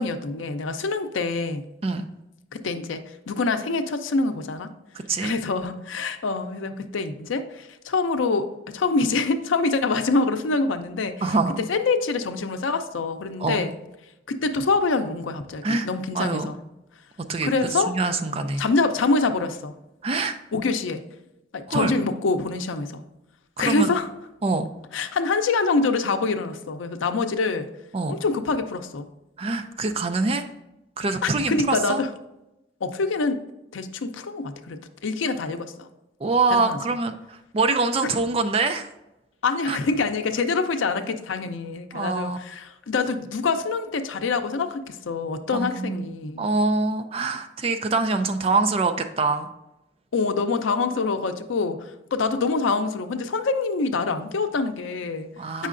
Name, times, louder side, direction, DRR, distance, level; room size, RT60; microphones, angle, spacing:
voice 1, 0.0-1.6 2.5-4.7 5.2-11.3 11.7-13.7 14.3-16.6 17.4-17.9 18.6-19.8 20.5-21.0 21.5-23.0 23.6-24.1 24.9-27.7 28.1-29.1 31.2-32.1 32.8-33.4 33.7-35.9 36.5-36.8 39.4-46.5 50.1-55.3 55.6-55.7, left 3 dB, 90° left, 8 dB, 0.5 m, -25 dB
voice 2, 4.9-5.3 11.2-11.6 13.4-13.6 15.6-15.9 16.1-16.6 17.3-17.5 17.9-18.6 20.0-20.4 21.7-21.9 23.6-23.9 24.4-24.7 27.9-28.2 29.4-30.5 31.0-32.0 36.2-38.9 39.7-39.8 41.9-42.4 45.5-46.0 46.4-49.5 55.4-55.7, right 3 dB, 30° right, 8 dB, 0.4 m, -24 dB
8.2 x 5.5 x 2.5 m, 0.92 s
head